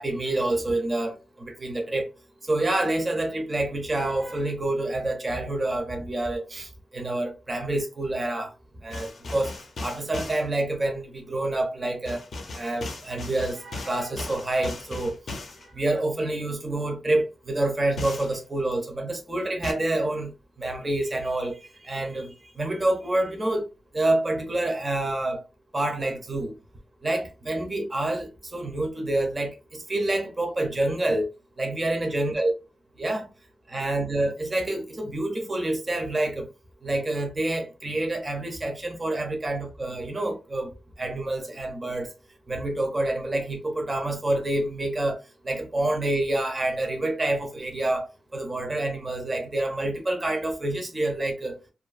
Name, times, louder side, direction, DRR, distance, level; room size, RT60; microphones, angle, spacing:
voice 1, 0.0-2.1 2.4-8.5 8.8-12.2 12.6-15.2 15.6-23.7 23.9-25.4 25.7-26.5 27.0-31.3 31.6-32.5 33.0-33.3 33.7-36.5 36.8-42.1 42.5-51.6, right 2 dB, 20° right, 0.5 m, -27 dB
sound 1, 8.9-10.4 12.1-15.7 18.0-18.4 19.6-19.7, left 2 dB, 50° left, 0.6 m, -36 dB
2.5 x 2.4 x 2.3 m
wide cardioid pair, 170°, 0 cm